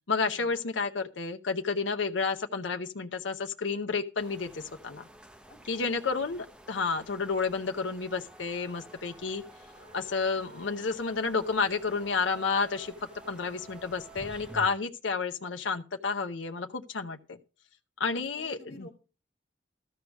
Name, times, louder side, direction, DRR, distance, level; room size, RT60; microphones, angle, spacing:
voice 1, 0.1-5.1 5.7-9.4 9.9-12.9 13.3-17.2 18.0-18.6, left 4 dB, 90° left, 0.7 m, -31 dB
sound 1, 4.2-14.7, equal, 5° right, 0.7 m, -51 dB
voice 2, 5.5-6.0 18.0-18.9, equal, 40° left, 1.9 m, -52 dB
sound 2, 8.0-14.8, right 3 dB, 35° right, 1.5 m, -54 dB
14.0 x 4.7 x 6.3 m
head